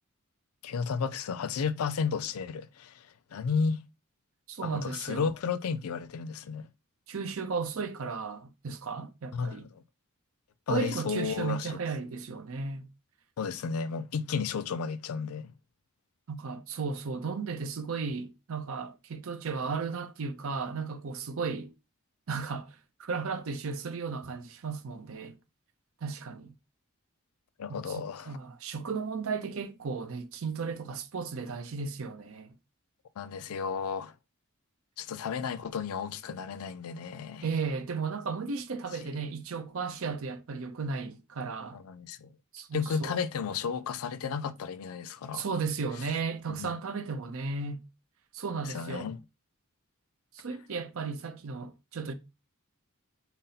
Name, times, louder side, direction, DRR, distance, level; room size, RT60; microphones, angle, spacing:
voice 1, 0.6-3.9 4.6-6.6 9.3-9.8 10.7-11.7 13.4-15.5 27.6-28.4 33.2-34.1 35.0-37.4 38.9-39.1 41.7-42.3 42.7-45.5 46.5-46.8 48.5-49.2, left 6 dB, 80° left, 0.4 m, -33 dB
voice 2, 4.5-5.3 7.1-9.7 10.7-12.9 16.3-21.7 22.3-22.7 23.0-25.4 26.0-26.5 27.7-32.5 37.4-41.8 42.5-43.1 45.3-47.8 48.3-49.1 50.3-52.1, right 5 dB, 65° right, 0.6 m, -35 dB
4.0 x 2.0 x 4.0 m
head